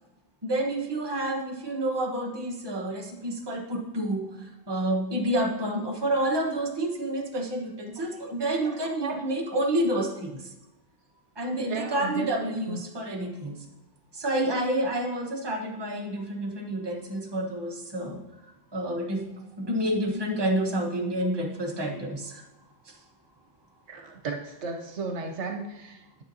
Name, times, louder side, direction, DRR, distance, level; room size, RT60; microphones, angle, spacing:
voice 1, 0.4-10.5 11.4-13.6 14.1-18.2 18.7-19.3 19.6-22.4 22.8-23.0, right 1 dB, 20° right, 0 dB, 1.1 m, -29 dB
voice 2, 8.0-9.2 11.6-12.8 23.9-26.2, right 4 dB, 70° right, 3 dB, 1.1 m, -36 dB
9.6 x 7.5 x 2.7 m, 0.98 s
omnidirectional pair, 1.2 m